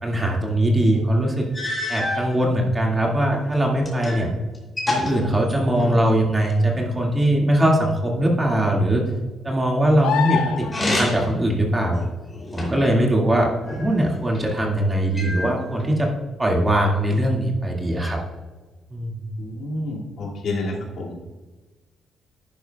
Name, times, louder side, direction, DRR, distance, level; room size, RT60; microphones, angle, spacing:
voice 1, 0.0-1.5 1.9-4.3 4.9-9.0 9.4-12.0 12.5-16.1 16.4-18.2 18.9-19.3, right 1 dB, 20° right, -1 dB, 1.9 m, -21 dB
sound 1, 0.9-1.0 1.5-2.3 3.1-4.3 4.5-6.1 10.6-11.4 11.9-12.9 13.7-14.5 15.1-15.9, left 1 dB, 20° left, 2.9 m, -28 dB
sound 2, 10.0-11.0 14.5-14.6, left 9 dB, 90° left, 0.6 m, -25 dB
voice 2, 19.6-21.1, left 2 dB, 65° left, -3 dB, 2.2 m, -29 dB
10.5 x 9.8 x 2.3 m, 1.3 s
cardioid pair, 90°, 0 cm